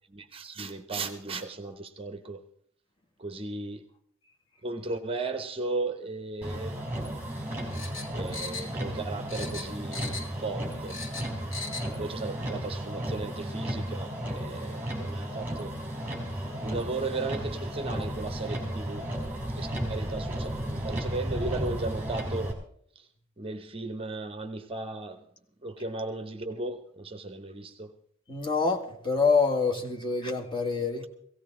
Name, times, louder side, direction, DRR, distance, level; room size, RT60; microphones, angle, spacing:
voice 1, 0.1-2.4 3.2-3.9 4.6-6.8 8.1-11.0 12.0-15.7 16.6-19.2 19.5-22.5 23.0-23.1 23.4-25.2 25.6-27.9, right 3 dB, 25° right, 0.8 m, -36 dB
Motor vehicle (road), 6.4-22.5, right 1 dB, 10° right, 4.1 m, -34 dB
sound 1, 7.7-9.0 9.3-10.4 10.7-11.9 12.2-12.3, left 3 dB, 70° left, 2.5 m, -38 dB
voice 2, 28.3-31.1, left 4 dB, 25° left, 1.9 m, -26 dB
17.5 x 16.5 x 3.7 m
head